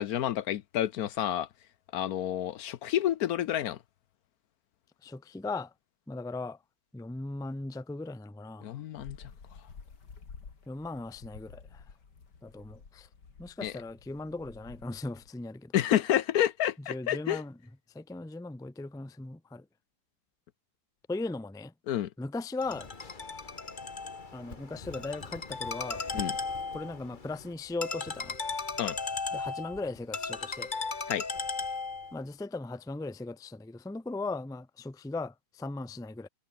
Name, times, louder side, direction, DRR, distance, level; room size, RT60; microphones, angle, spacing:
voice 1, 0.0-1.5 1.9-3.8 8.6-9.2 13.6-13.7 15.7-17.4 21.9-22.1 26.1-26.3 28.8-29.0 31.1-31.2, left 11 dB, 70° left, 1.1 m, -29 dB
voice 2, 5.0-5.7 6.1-6.6 6.9-8.8 10.7-11.8 12.4-13.1 13.4-15.7 16.8-17.6 17.9-19.6 21.1-21.7 22.2-22.9 24.3-26.3 26.7-28.4 29.3-30.7 32.1-36.3, left 3 dB, 5° left, 0.5 m, -38 dB
sound 1, 9.0-15.3, left 5 dB, 90° left, 3.2 m, -51 dB
Ringtone, 22.6-32.2, left 4 dB, 30° left, 1.6 m, -36 dB
omnidirectional pair, 1.8 m